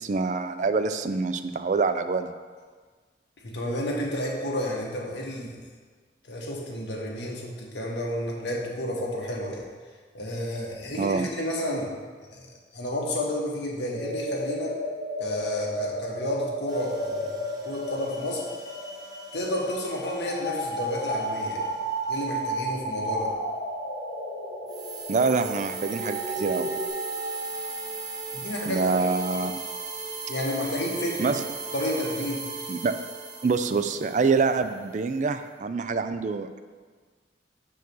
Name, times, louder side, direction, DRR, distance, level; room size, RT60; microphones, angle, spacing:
voice 1, 0.0-2.3 11.0-11.3 25.1-26.7 28.7-29.5 31.2-31.4 32.7-33.0 33.4-36.6, right 4 dB, 40° right, 9 dB, 0.4 m, -25 dB
voice 2, 3.4-5.6 6.3-9.6 10.1-11.9 12.3-12.5 12.7-14.8 15.2-17.3 17.6-18.4 19.3-21.7 22.1-23.3 28.3-29.1 30.3-31.3 31.7-32.5, left 1 dB, 75° left, -2 dB, 1.5 m, -31 dB
sound 1, 13.6-26.9, right 1 dB, 35° left, 1.7 m, -33 dB
sound 2, 16.7-22.1 24.7-34.6, right 4 dB, 20° right, 0.9 m, -37 dB
6.9 x 4.6 x 6.1 m, 1.5 s
head